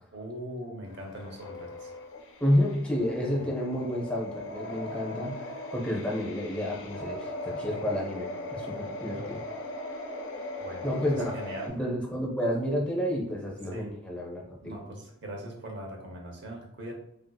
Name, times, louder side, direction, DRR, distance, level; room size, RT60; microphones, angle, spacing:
voice 1, 0.1-1.9 3.4-3.5 9.1-9.4 10.6-11.7 13.7-14.0 14.6-16.9, right 1 dB, 50° right, 1 dB, 0.7 m, -41 dB
sound 1, 0.9-11.7, left 1 dB, 60° left, 0.4 m, -39 dB
voice 2, 2.4-9.4 10.8-11.4 11.7-14.8, equal, 5° left, -3 dB, 0.6 m, -30 dB
3.5 x 2.8 x 2.2 m, 0.76 s
head